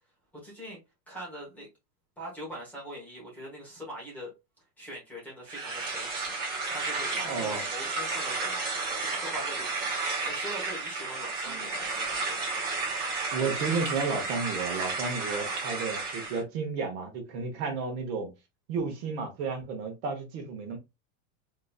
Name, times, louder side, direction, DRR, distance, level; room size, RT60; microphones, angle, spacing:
voice 1, 0.3-0.8 1.1-1.7 2.2-4.3 4.8-8.6 9.1-9.9 10.3-12.4, right 1 dB, 5° left, 1.0 m, -42 dB
sound 1, 5.5-16.4, right 3 dB, 20° right, 0.7 m, -32 dB
voice 2, 7.1-7.6 11.5-11.7 13.3-18.3 18.7-20.8, right 4 dB, 45° right, 1.0 m, -32 dB
3.8 x 2.9 x 2.3 m
supercardioid pair, 175°, 44 cm